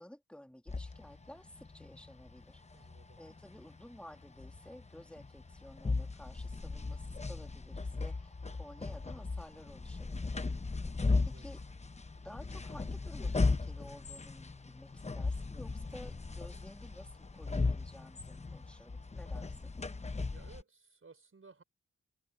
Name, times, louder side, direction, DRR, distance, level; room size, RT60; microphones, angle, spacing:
voice 1, 0.0-2.9 3.2-10.4 11.3-11.6 12.1-19.7, left 1 dB, 5° left, 2.2 m, -53 dB
sound 1, 0.7-20.6, left 3 dB, 20° left, 0.8 m, -37 dB
voice 2, 2.7-3.2 10.8-11.7 20.3-21.6, right 4 dB, 45° right, 5.5 m, -59 dB
wide cardioid pair, 120°, 30 cm